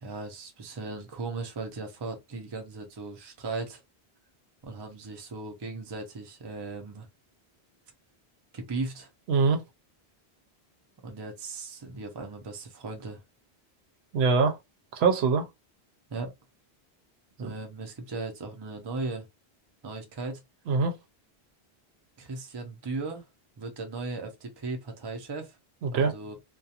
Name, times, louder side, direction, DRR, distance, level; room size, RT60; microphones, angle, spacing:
voice 1, 0.0-3.8 4.6-7.1 8.5-9.1 11.0-13.2 16.1-16.3 17.4-19.3 19.8-20.4 22.2-23.3 23.6-25.6 25.9-26.4, right 3 dB, 30° right, 0.5 m, -37 dB
voice 2, 9.3-9.6 14.1-14.6 14.9-15.5 17.4-17.5 20.7-21.0 25.8-26.1, right 4 dB, 75° right, 0.8 m, -23 dB
2.4 x 2.2 x 2.7 m
omnidirectional pair, 1.1 m